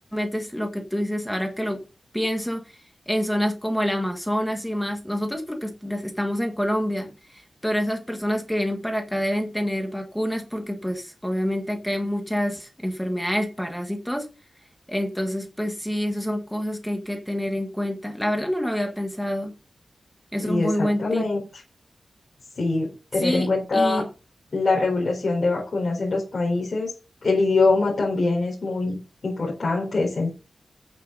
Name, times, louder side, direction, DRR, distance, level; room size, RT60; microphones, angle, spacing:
voice 1, 0.1-1.8 2.1-14.3 14.9-19.5 20.3-21.3 23.2-24.0, equal, 5° left, 3 dB, 1.8 m, -27 dB
voice 2, 20.4-21.4 22.6-24.0 24.5-26.9 27.2-30.3, left 3 dB, 50° left, -3 dB, 4.4 m, -23 dB
9.2 x 8.9 x 4.0 m, 0.31 s
wide cardioid pair, 120°, 0 cm